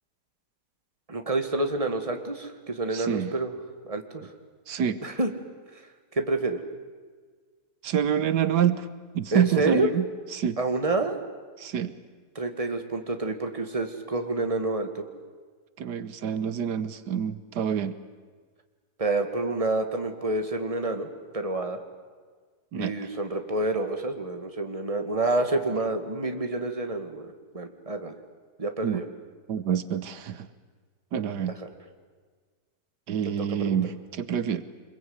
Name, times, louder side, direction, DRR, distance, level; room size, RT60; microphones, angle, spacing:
voice 1, 1.1-3.5 3.8-4.3 5.0-5.3 5.7-5.8 6.1-6.6 9.3-9.9 10.6-11.2 12.4-15.1 19.0-21.1 21.3-21.8 22.8-28.1 28.6-29.0 31.6-31.7 33.2-33.3 33.6-33.8, right 2 dB, 20° right, 6 dB, 2.1 m, -28 dB
voice 2, 2.9-3.3 4.7-5.0 7.8-8.9 9.1-10.0 10.3-10.6 11.6-11.9 15.8-18.0 22.7-22.9 28.8-29.0 29.5-30.5 31.1-31.6 33.1-34.6, right 8 dB, 85° right, 14 dB, 1.7 m, -27 dB
25.5 x 22.0 x 9.7 m, 1.5 s
omnidirectional pair, 1.7 m